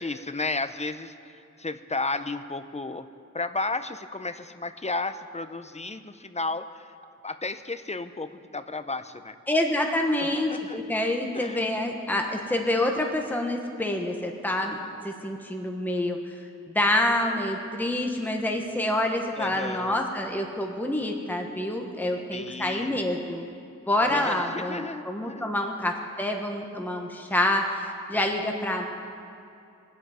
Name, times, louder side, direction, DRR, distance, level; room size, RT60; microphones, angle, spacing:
voice 1, 0.0-3.1 3.3-6.9 7.2-9.4 10.2-10.8 11.3-11.7 19.4-20.0 22.3-22.9 24.0-25.5, left 3 dB, 25° left, 10 dB, 0.7 m, -33 dB
voice 2, 9.5-14.8 15.0-16.2 16.7-23.5 23.9-28.9, left 1 dB, 5° left, 2 dB, 1.2 m, -27 dB
23.0 x 8.0 x 5.0 m, 2.6 s
wide cardioid pair, 85°, 29 cm